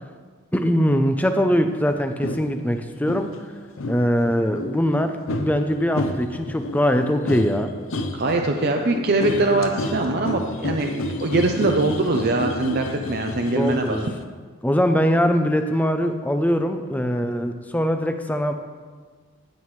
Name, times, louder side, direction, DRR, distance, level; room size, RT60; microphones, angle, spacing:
voice 1, 0.5-3.3 3.9-7.7 13.5-14.0 14.6-18.5, equal, 5° left, 7 dB, 0.5 m, -22 dB
sound 1, 2.2-2.5 3.1-3.3 3.8-14.2, left 1 dB, 65° left, 0.7 m, -30 dB
voice 2, 8.1-14.0, right 2 dB, 45° right, 3 dB, 0.6 m, -22 dB
15.0 x 8.9 x 3.2 m, 1.5 s
head